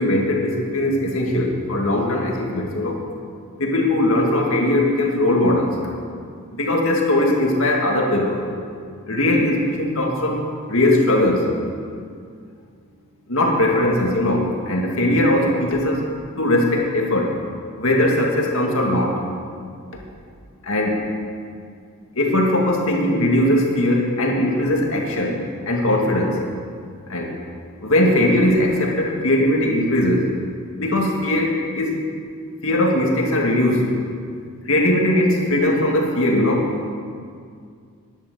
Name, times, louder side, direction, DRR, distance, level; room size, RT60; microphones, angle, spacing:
voice 1, 0.0-3.0 3.6-5.9 6.5-8.4 9.1-10.4 10.7-11.4 13.3-16.1 16.4-17.3 17.8-19.2 20.6-21.0 22.2-25.4 25.7-26.4 27.1-27.3 27.8-30.3 30.8-32.0 32.6-34.0 34.7-36.7, left 1 dB, 65° left, -1 dB, 2.2 m, -19 dB
11.5 x 10.5 x 7.0 m, 2.2 s
head